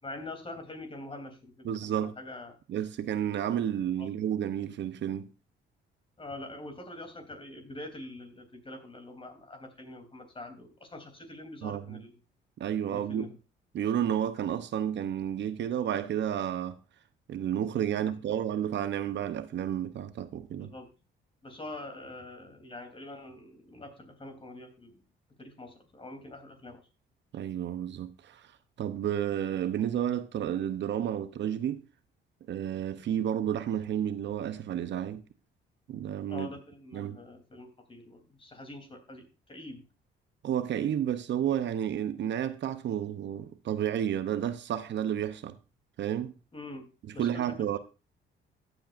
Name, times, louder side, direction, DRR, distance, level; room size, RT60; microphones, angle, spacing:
voice 1, 0.0-2.6 4.0-4.1 6.2-12.2 12.8-13.4 17.9-18.2 20.6-20.9 21.4-25.0 25.4-26.8 36.3-39.8 46.5-47.8, left 2 dB, 25° left, 3.2 m, -45 dB
voice 2, 1.6-2.2 2.7-5.3 11.6-12.0 12.6-13.3 13.7-16.8 17.3-20.7 27.3-28.5 28.8-31.8 32.5-35.2 35.9-36.5 36.9-37.2 40.4-45.6 46.0-46.3 47.2-47.8, right 10 dB, 65° right, 0.8 m, -31 dB
14.5 x 8.2 x 2.5 m
cardioid pair, 90°, 20 cm